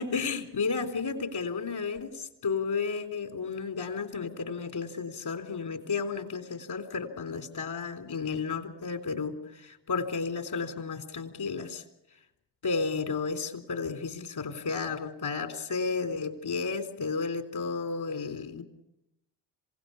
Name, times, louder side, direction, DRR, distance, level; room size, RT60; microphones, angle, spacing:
voice 1, 0.0-11.8 12.6-18.6, left 5 dB, 60° left, 6 dB, 3.9 m, -32 dB
27.0 x 17.5 x 7.0 m, 0.86 s
supercardioid pair, 55°, 44 cm